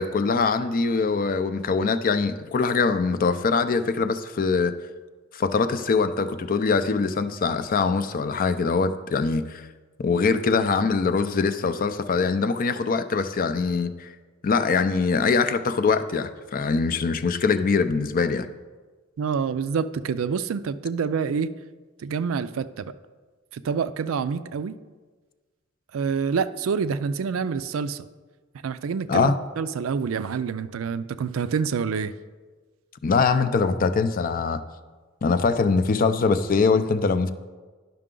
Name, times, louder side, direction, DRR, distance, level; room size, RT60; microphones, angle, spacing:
voice 1, 0.0-4.7 5.3-9.6 10.0-14.1 14.4-18.5 29.1-29.3 33.0-34.6 35.2-37.3, left 4 dB, 45° left, 11 dB, 0.4 m, -23 dB
voice 2, 19.2-21.5 22.0-22.9 23.5-24.8 25.9-28.0 28.6-32.1, right 6 dB, 75° right, 13 dB, 0.4 m, -27 dB
11.0 x 5.8 x 3.7 m, 1.4 s
head